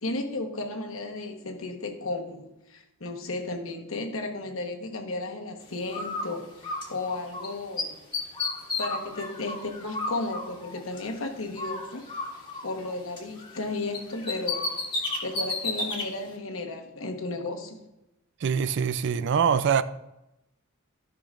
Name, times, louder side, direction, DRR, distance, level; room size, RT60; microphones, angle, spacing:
voice 1, 0.0-8.1 8.8-12.1 12.6-17.8, left 2 dB, 80° left, 1.2 m, -34 dB
Bird, 5.9-7.5 7.8-11.2 11.6-13.7 13.9-16.1, left 3 dB, 25° left, 1.8 m, -33 dB
voice 2, 18.4-19.8, right 7 dB, 60° right, 0.4 m, -24 dB
13.0 x 5.9 x 2.5 m
head